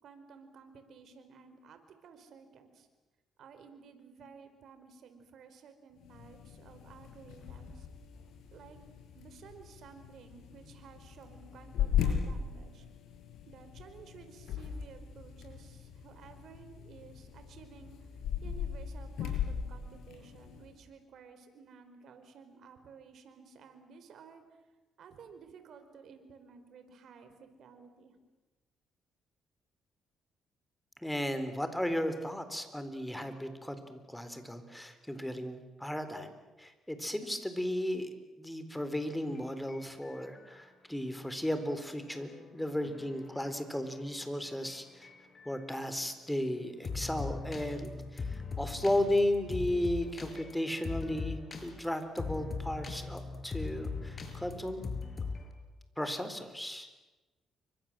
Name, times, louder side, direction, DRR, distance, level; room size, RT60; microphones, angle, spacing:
voice 1, 0.0-2.9 3.4-7.9 8.5-8.8 9.1-12.9 13.5-18.1 18.4-24.6 25.0-28.2, right 6 dB, 70° right, 8 dB, 4.7 m, -54 dB
sound 1, 6.0-20.7, left 8 dB, 80° left, 6.8 m, -38 dB
voice 2, 31.0-36.3 36.6-45.1 45.5-54.8 56.0-56.9, left 1 dB, 5° left, 9 dB, 4.0 m, -35 dB
sound 2, 38.7-40.6 41.5-45.9 46.8-55.5, left 4 dB, 40° left, 5.3 m, -41 dB
30.0 x 24.5 x 7.7 m, 1.1 s
cardioid pair, 90°, 0 cm